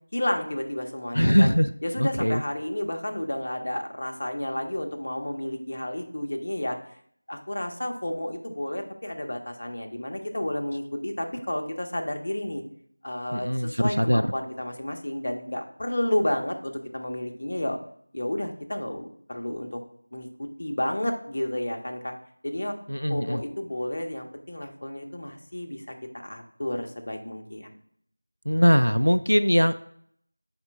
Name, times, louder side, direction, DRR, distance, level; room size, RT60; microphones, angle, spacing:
voice 1, 0.1-1.5 1.8-6.8 7.3-12.6 13.0-17.8 18.1-19.8 20.1-22.1 22.4-22.8 23.1-25.8 26.2-27.7, left 1 dB, 35° left, 3 dB, 0.7 m, -31 dB
voice 2, 1.1-1.7 2.0-2.4 13.3-14.2 22.9-23.4 28.5-29.7, equal, 85° left, 9 dB, 0.3 m, -21 dB
4.3 x 4.1 x 5.5 m, 0.66 s
figure-of-eight pair, 175°, 0 cm